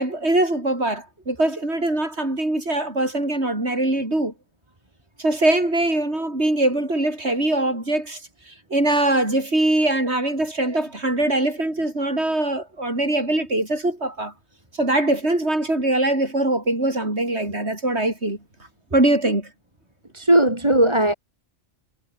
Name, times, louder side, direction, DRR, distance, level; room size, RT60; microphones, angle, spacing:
voice 1, 0.0-4.3 5.2-8.2 8.5-14.3 14.8-18.4 18.9-19.5, right 1 dB, 60° right, 7.3 m, -22 dB
voice 2, 20.1-21.1, right 1 dB, 20° right, 3.8 m, -17 dB
omnidirectional pair, 1.3 m